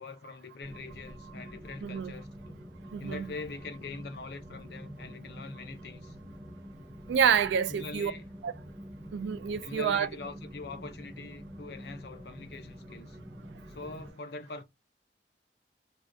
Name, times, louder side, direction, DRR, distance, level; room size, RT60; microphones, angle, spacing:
voice 1, 0.0-2.6 3.0-6.2 7.7-8.2 9.6-13.2 13.7-14.6, left 3 dB, 60° left, 0.5 m, -43 dB
sound 1, 0.6-14.1, equal, 15° right, 0.5 m, -47 dB
voice 2, 1.8-2.1 2.9-3.3 7.1-8.1 8.4-8.5 9.1-10.1, right 7 dB, 75° right, 0.3 m, -27 dB
2.6 x 2.2 x 3.5 m
head